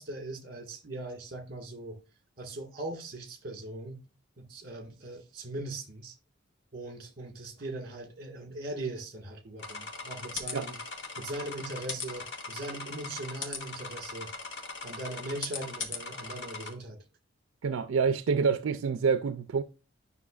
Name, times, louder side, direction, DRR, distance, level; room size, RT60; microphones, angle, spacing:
voice 1, 0.0-2.0 2.4-4.0 4.4-6.1 6.7-10.8 11.2-14.3 14.8-17.0, right 2 dB, 45° right, 1.7 m, -40 dB
sound 1, 9.6-16.7, left 4 dB, 65° left, 1.2 m, -39 dB
voice 2, 17.6-19.6, right 5 dB, 80° right, 0.4 m, -27 dB
9.5 x 5.6 x 2.4 m
head